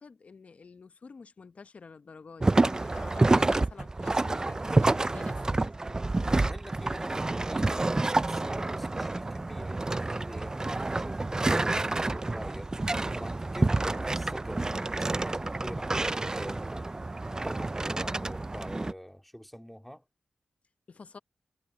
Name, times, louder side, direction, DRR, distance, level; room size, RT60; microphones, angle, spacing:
voice 1, 0.0-5.7 20.9-21.2, left 4 dB, 50° left, 0.9 m, -48 dB
sound 1, 2.4-18.9, right 2 dB, 25° right, 0.4 m, -28 dB
voice 2, 6.4-16.9 17.3-20.0, equal, 5° left, 2.3 m, -45 dB
cardioid pair, 65°, 3 cm